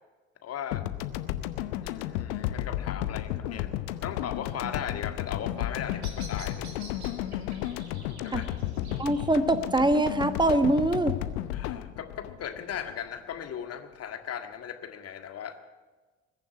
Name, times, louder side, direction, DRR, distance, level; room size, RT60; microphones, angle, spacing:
voice 1, 0.4-0.8 1.8-3.7 4.0-6.7 8.2-8.5 11.5-15.6, left 8 dB, 50° left, 7 dB, 1.8 m, -37 dB
sound 1, 0.7-13.2, left 13 dB, 75° left, 0.8 m, -33 dB
Bird vocalization bird call bird song, 5.5-11.5, right 3 dB, 85° right, 2.0 m, -51 dB
voice 2, 9.0-11.2, right 2 dB, 15° right, 10 dB, 1.6 m, -24 dB
21.0 x 7.1 x 9.5 m, 1.3 s
hypercardioid pair, 50°, 32 cm